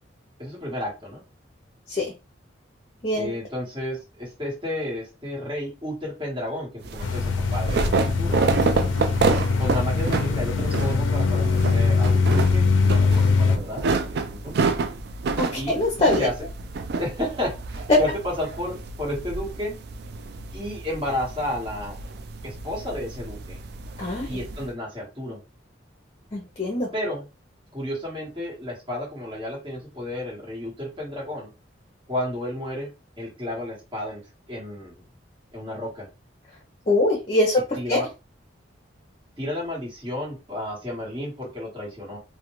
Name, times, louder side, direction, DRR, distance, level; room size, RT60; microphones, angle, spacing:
voice 1, 0.4-1.2 3.2-8.4 9.6-14.6 15.6-15.9 16.2-16.3 17.0-19.8 20.5-22.0 22.4-23.6 24.2-25.4 26.9-27.3 27.7-31.5 32.1-32.9 33.2-34.2 34.5-35.0 35.5-36.1 37.7-38.1 39.4-42.2, left 1 dB, 25° right, -5 dB, 1.2 m, -32 dB
sound 1, 6.8-24.7, right 4 dB, 55° right, 0.3 m, -29 dB
sound 2, 7.0-13.6, left 4 dB, 80° left, 0.4 m, -22 dB
voice 2, 15.4-16.3 17.9-18.0 24.0-24.3 26.3-26.9 36.9-37.6 37.9-38.0, left 2 dB, 30° left, 0 dB, 0.6 m, -22 dB
2.4 x 2.1 x 3.0 m, 0.28 s
head